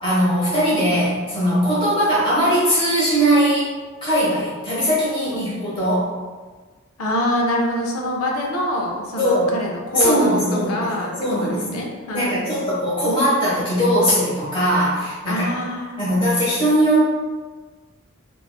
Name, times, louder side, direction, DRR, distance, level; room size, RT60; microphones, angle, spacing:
voice 1, 0.0-3.7 4.0-6.1 9.2-9.5 9.9-11.8 12.1-15.5 16.0-17.0, equal, 25° left, -9 dB, 1.1 m, -20 dB
voice 2, 5.3-5.7 7.0-12.5 15.2-16.3, left 1 dB, 80° left, -1 dB, 0.5 m, -25 dB
3.8 x 2.4 x 2.2 m, 1.4 s
head